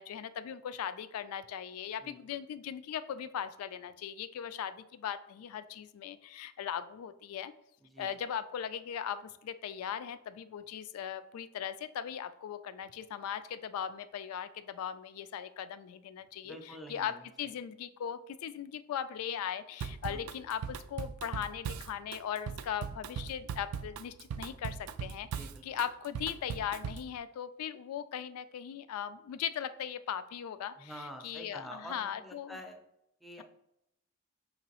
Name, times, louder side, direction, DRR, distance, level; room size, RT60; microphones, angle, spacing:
voice 1, 0.0-7.5 8.0-16.6 16.9-25.3 25.6-30.9 31.2-32.6, left 9 dB, 80° left, 15 dB, 0.3 m, -39 dB
voice 2, 2.0-2.4 7.8-8.1 16.4-17.6 20.1-20.3 25.3-25.6 30.8-32.8 33.2-33.4, equal, ahead, 3 dB, 0.4 m, -48 dB
Drum kit / Drum, 19.8-27.1, right 7 dB, 85° right, 0.3 m, -39 dB
5.3 x 2.9 x 2.9 m, 0.82 s
head